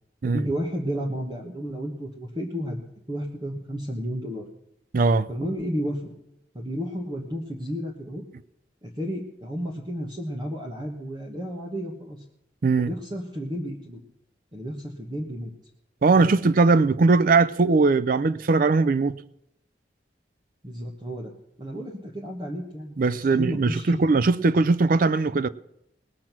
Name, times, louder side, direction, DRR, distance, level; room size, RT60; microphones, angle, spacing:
voice 1, 0.2-2.8 3.1-4.5 5.3-6.1 6.5-8.2 8.8-12.2 12.7-14.0 14.5-15.5 20.6-21.3 21.6-23.9, equal, 25° right, 1.3 m, -32 dB
voice 2, 4.9-5.3 12.6-12.9 16.0-19.2 23.0-25.5, right 3 dB, 50° right, 0.4 m, -20 dB
19.5 x 7.4 x 6.0 m
head